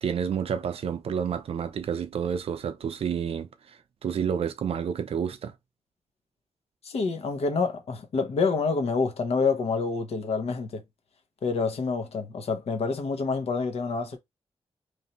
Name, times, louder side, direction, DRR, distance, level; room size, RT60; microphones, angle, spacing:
voice 1, 0.0-5.5, right 7 dB, 65° right, 0.5 m, -30 dB
voice 2, 6.8-10.8 11.4-14.2, left 4 dB, 75° left, 0.9 m, -27 dB
3.2 x 2.7 x 4.1 m
wide cardioid pair, 140°, 11 cm